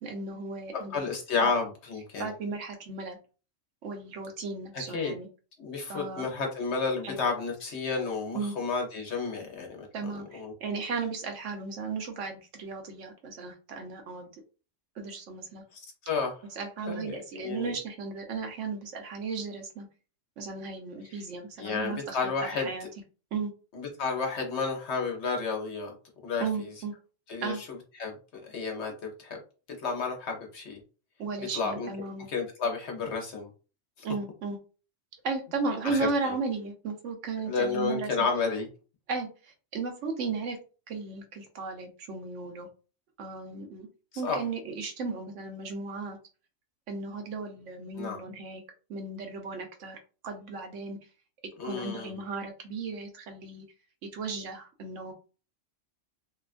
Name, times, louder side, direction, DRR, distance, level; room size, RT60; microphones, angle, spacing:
voice 1, 0.0-1.1 1.4-1.5 2.2-3.2 3.8-5.3 5.9-6.2 7.0-7.2 8.3-8.5 9.9-14.3 15.0-15.6 16.5-19.9 20.4-22.2 22.6-22.9 23.3-23.5 26.4-26.9 27.4-27.6 31.2-32.3 34.0-34.6 35.2-38.3 39.1-40.6 40.9-42.7 43.2-43.9 44.2-46.2 46.9-48.6 48.9-50.0 50.2-51.0 51.6-53.6 54.0-55.1, right 4 dB, 75° right, 4 dB, 1.0 m, -35 dB
voice 2, 0.9-2.3 4.9-5.1 5.6-10.5 15.7-16.4 16.8-17.7 21.1-21.2 21.6-22.9 23.7-25.9 26.2-26.7 27.3-27.7 28.0-29.4 29.8-30.8 31.5-31.9 32.3-33.5 34.0-34.1 35.8-36.3 37.5-38.7 44.2-44.4 48.0-48.2 51.6-52.1, left 4 dB, 65° left, 1 dB, 1.0 m, -31 dB
2.9 x 2.3 x 2.4 m, 0.35 s
omnidirectional pair, 1.3 m